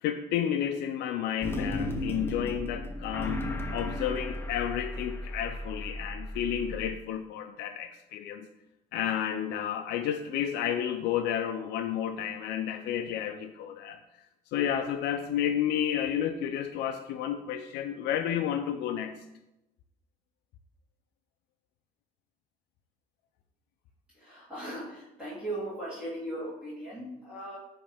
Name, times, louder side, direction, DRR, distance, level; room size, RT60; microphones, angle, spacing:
voice 1, 0.0-3.5 3.7-8.5 8.9-14.0 14.5-19.2, left 9 dB, 80° left, 6 dB, 0.4 m, -31 dB
sound 1, 1.4-6.9, left 1 dB, 15° left, 0.8 m, -35 dB
voice 2, 24.1-27.6, right 1 dB, 5° right, -10 dB, 2.4 m, -38 dB
9.5 x 3.2 x 3.4 m, 0.93 s
cardioid pair, 110°, 17 cm